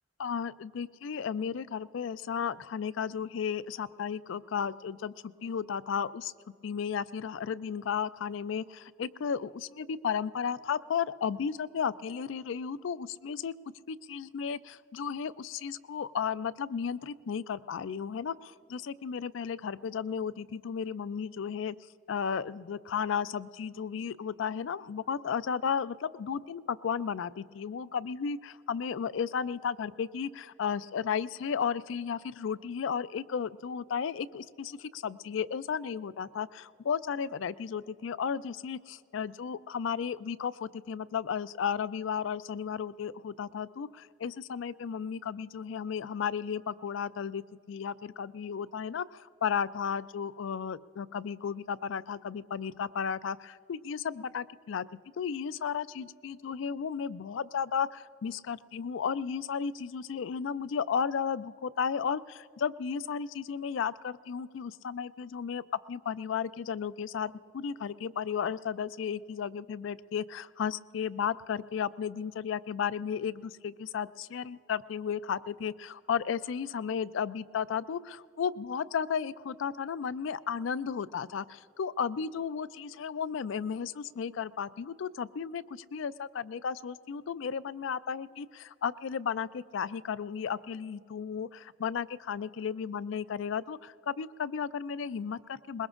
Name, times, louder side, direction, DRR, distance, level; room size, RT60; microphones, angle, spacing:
voice 1, 0.2-5.1 5.4-6.3 6.6-13.5 13.9-21.8 22.1-54.9 55.2-95.9, left 7 dB, 65° left, 17 dB, 0.4 m, -34 dB
23.0 x 21.0 x 2.5 m, 2.5 s
head